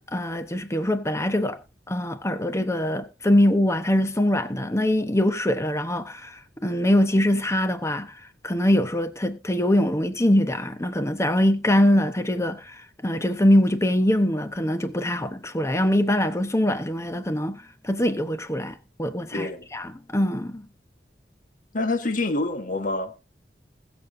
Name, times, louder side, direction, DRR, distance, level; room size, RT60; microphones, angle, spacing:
voice 1, 0.1-1.6 1.9-8.2 8.4-20.7, left 1 dB, 15° left, 0.9 m, -23 dB
voice 2, 19.3-19.7 21.7-23.1, left 2 dB, 50° left, 1.3 m, -26 dB
21.0 x 7.2 x 2.6 m
head